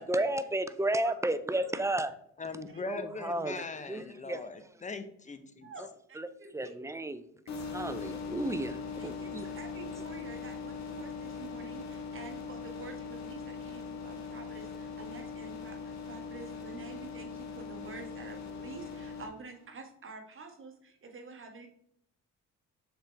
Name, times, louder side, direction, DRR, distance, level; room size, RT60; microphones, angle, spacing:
voice 1, 0.0-2.1 2.9-3.6 3.9-4.4 6.2-6.3 6.5-7.2 7.7-9.5, right 1 dB, 10° right, 13 dB, 0.4 m, -32 dB
voice 2, 1.0-2.0 2.7-3.4 5.6-5.8 6.1-6.8 7.9-8.0 9.0-21.7, right 4 dB, 45° right, 4 dB, 1.4 m, -48 dB
voice 3, 2.4-5.7, left 4 dB, 25° left, 10 dB, 0.8 m, -40 dB
sound 1, 7.5-19.2, left 5 dB, 65° left, 1.4 m, -41 dB
6.5 x 4.5 x 3.4 m, 0.71 s
cardioid pair, 90°, 30 cm